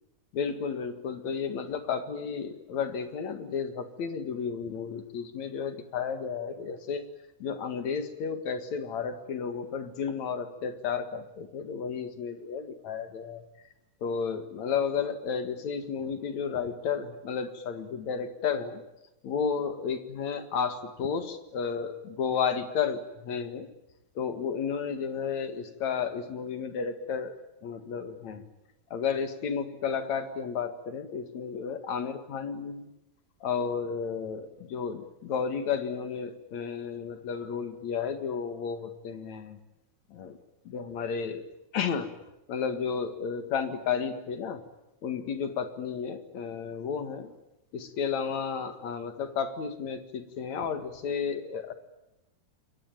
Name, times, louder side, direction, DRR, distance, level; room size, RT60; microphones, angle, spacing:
voice 1, 0.3-7.0 7.4-13.4 14.0-18.8 19.2-23.7 24.2-27.4 27.6-28.4 28.9-32.8 33.4-39.6 40.1-40.4 40.7-41.4 41.7-42.1 42.5-44.6 45.0-47.3 47.7-51.7, left 6 dB, 70° left, 9 dB, 3.1 m, -32 dB
28.0 x 22.5 x 9.1 m, 0.92 s
omnidirectional pair, 3.5 m